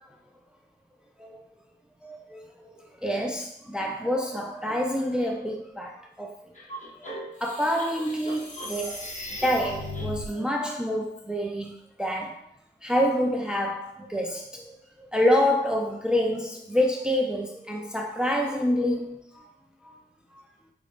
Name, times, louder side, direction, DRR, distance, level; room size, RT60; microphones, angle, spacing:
voice 1, 2.0-2.7 3.0-6.3 7.4-9.1 9.4-11.7 12.0-12.4 12.8-14.7 15.0-19.4 19.8-19.9, equal, 5° right, 0 dB, 0.4 m, -27 dB
sound 1, 6.5-10.3, left 1 dB, 40° left, 1.0 m, -37 dB
5.0 x 3.3 x 2.5 m, 0.71 s
wide cardioid pair, 140°, 19 cm